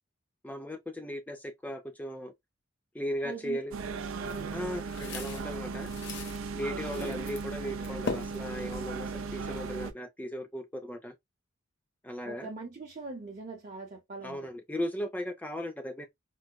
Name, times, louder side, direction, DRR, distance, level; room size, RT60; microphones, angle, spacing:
voice 1, 0.4-2.3 2.9-3.7 4.5-5.9 6.5-11.1 12.0-12.5 14.2-16.1, equal, 10° left, 0.4 m, -37 dB
voice 2, 3.2-3.6 3.9-4.6 6.7-7.1 12.2-14.4, right 3 dB, 40° right, 0.7 m, -42 dB
sound 1, 3.7-9.9, right 4 dB, 85° right, 0.5 m, -37 dB
sound 2, 4.3-6.4 6.8-7.5 7.8-9.3, left 4 dB, 60° left, 0.7 m, -40 dB
4.6 x 2.1 x 2.2 m
head